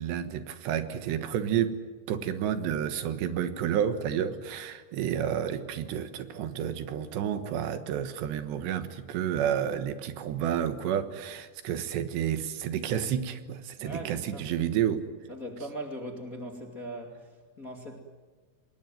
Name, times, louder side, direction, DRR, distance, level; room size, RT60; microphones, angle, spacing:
voice 1, 0.0-1.8 2.1-15.1, right 9 dB, 75° right, 10 dB, 3.4 m, -30 dB
voice 2, 13.8-14.6 15.3-18.0, equal, 25° left, 3 dB, 1.9 m, -40 dB
26.5 x 20.5 x 9.3 m, 1.4 s
omnidirectional pair, 5.2 m